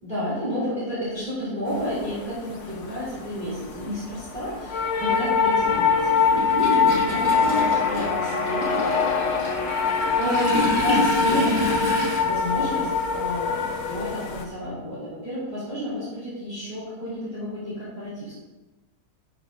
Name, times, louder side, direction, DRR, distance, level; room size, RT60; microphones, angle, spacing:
voice 1, 0.0-8.9 10.2-11.5 12.2-18.3, equal, 25° right, -12 dB, 3.0 m, -31 dB
sound 1, 1.7-14.4, left 5 dB, 55° left, 1.1 m, -24 dB
Toilet flush, 1.7-1.8 3.1-3.2 3.6-12.2, left 1 dB, 75° right, 3.6 m, -29 dB
12.0 x 6.8 x 2.5 m, 1.1 s
omnidirectional pair, 1.7 m